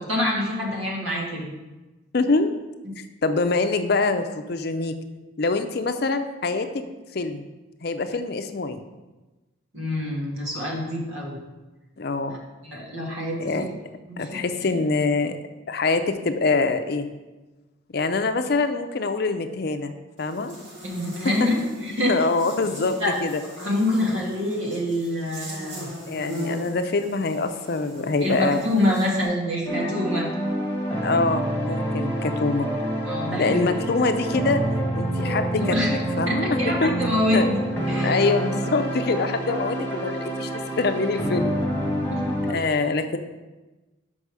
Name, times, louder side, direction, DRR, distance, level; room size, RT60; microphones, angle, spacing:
voice 1, 0.1-1.4 9.7-11.4 12.3-12.4 12.6-13.7 14.1-14.7 20.8-21.5 21.8-22.1 23.0-23.1 23.6-25.9 28.0-30.3 33.1-33.7 35.5-36.0 36.3-37.6 37.9-38.2 42.1-42.2 42.6-42.7, left 1 dB, 85° right, -3 dB, 2.0 m, -26 dB
voice 2, 2.1-2.5 3.0-4.9 5.4-6.8 7.1-7.5 7.8-8.8 12.0-12.4 13.4-13.7 14.2-15.4 15.7-17.1 17.9-19.9 20.2-20.5 21.4-21.5 22.1-23.4 26.1-28.6 31.0-32.7 33.4-34.6 34.9-35.6 35.9-36.9 37.3-37.5 38.0-41.6 42.5-43.2, left 3 dB, 50° left, 8 dB, 0.5 m, -24 dB
Buzz, 20.2-29.2, equal, 60° right, 2.4 m, -39 dB
sound 1, 29.7-42.5, right 1 dB, 10° left, 1.3 m, -27 dB
6.7 x 5.3 x 4.8 m, 1.1 s
head